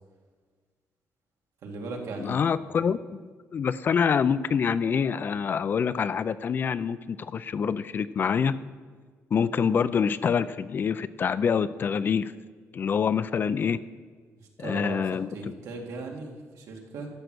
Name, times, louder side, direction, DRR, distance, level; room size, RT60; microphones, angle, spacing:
voice 1, 1.6-2.3 14.4-17.1, right 3 dB, 80° right, 1 dB, 1.8 m, -38 dB
voice 2, 2.2-3.2 3.5-8.6 9.3-12.3 12.7-13.8 14.6-15.5, left 6 dB, 40° left, 15 dB, 0.3 m, -26 dB
13.0 x 7.8 x 6.1 m, 1.5 s
cardioid pair, 150°, 5 cm